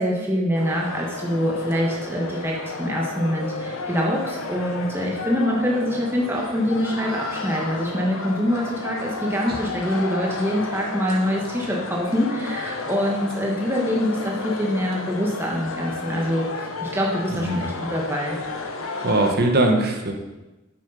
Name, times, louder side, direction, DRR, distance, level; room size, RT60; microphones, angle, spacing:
voice 1, 0.0-16.5 16.8-18.4, equal, 10° right, -3 dB, 1.3 m, -24 dB
sound 1, 0.5-19.3, left 3 dB, 80° left, 1.1 m, -32 dB
voice 2, 17.3-17.6 19.0-20.1, right 2 dB, 50° right, 3 dB, 1.3 m, -20 dB
8.3 x 6.3 x 5.4 m, 1.1 s
head